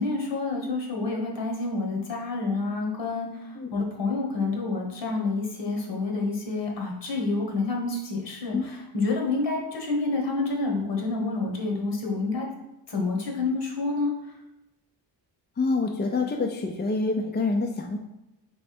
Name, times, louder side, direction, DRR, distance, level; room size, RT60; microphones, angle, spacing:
voice 1, 0.0-12.5 12.9-14.4, left 3 dB, 70° left, 0 dB, 1.2 m, -28 dB
voice 2, 15.6-18.0, left 3 dB, 25° left, 2 dB, 0.4 m, -26 dB
3.4 x 3.2 x 4.2 m, 0.92 s
cardioid pair, 85°, 44 cm